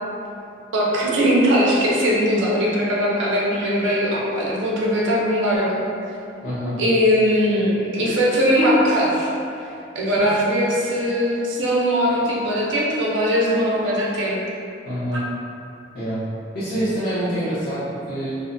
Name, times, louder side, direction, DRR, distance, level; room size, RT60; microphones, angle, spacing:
voice 1, 0.7-5.8 6.8-9.3 9.9-14.4, equal, 85° right, -4 dB, 0.5 m, -20 dB
voice 2, 6.4-6.8 10.2-10.3 14.9-15.3 15.9-18.4, right 1 dB, 50° left, -15 dB, 0.7 m, -26 dB
2.5 x 2.1 x 2.5 m, 2.6 s
head